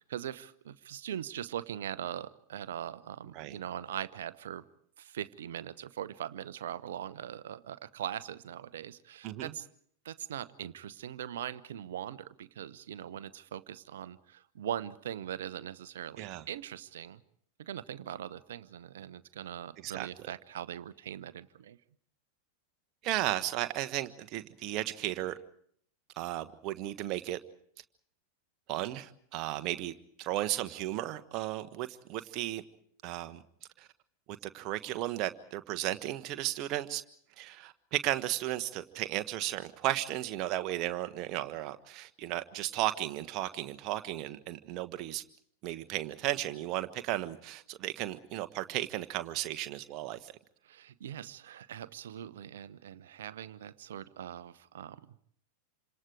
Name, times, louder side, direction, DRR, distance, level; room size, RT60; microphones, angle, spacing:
voice 1, 0.0-4.6 5.0-9.7 10.0-17.2 17.6-21.8 50.6-55.1, right 10 dB, 60° right, 16 dB, 1.0 m, -41 dB
voice 2, 23.0-25.3 26.2-27.4 28.7-29.9 30.2-32.6 33.0-33.4 33.8-33.9 34.4-37.0 37.4-45.2 45.6-50.3, right 14 dB, 40° right, 9 dB, 1.4 m, -34 dB
28.0 x 26.5 x 4.9 m, 0.63 s
figure-of-eight pair, 90°, 0 cm